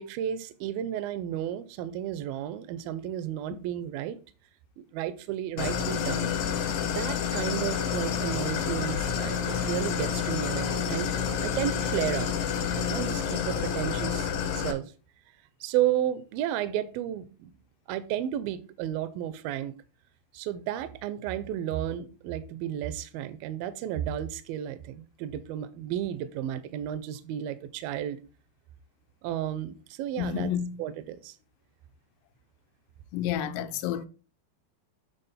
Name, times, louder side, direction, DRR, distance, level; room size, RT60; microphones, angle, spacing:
voice 1, 0.0-4.2 4.8-6.3 6.8-11.1 11.4-12.3 12.8-14.9 15.6-17.5 17.9-19.8 20.3-28.2 29.2-30.5 30.8-31.4, right 11 dB, 85° right, 2.2 m, -32 dB
Idling, 5.6-14.7, left 7 dB, 65° left, 2.6 m, -29 dB
voice 2, 30.2-30.8 33.1-34.1, left 10 dB, 90° left, 2.7 m, -30 dB
9.1 x 4.1 x 4.2 m
omnidirectional pair, 4.8 m